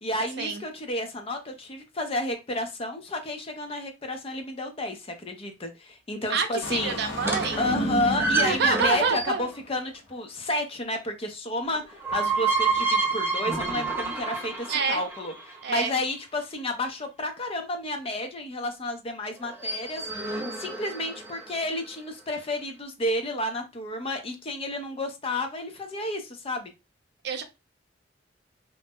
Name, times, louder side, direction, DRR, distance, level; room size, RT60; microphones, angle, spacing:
voice 1, 0.0-7.0 7.6-26.7, left 1 dB, 30° left, 0.5 m, -31 dB
voice 2, 6.3-7.7 8.4-9.5 14.7-15.0 15.6-15.9 27.2-27.4, right 5 dB, 60° right, 0.6 m, -27 dB
Engine starting, 6.6-9.6, equal, 55° left, 0.9 m, -32 dB
sound 1, 7.2-9.5 11.7-15.8 19.4-21.6, right 4 dB, 15° right, 0.5 m, -29 dB
2.5 x 2.0 x 3.4 m
head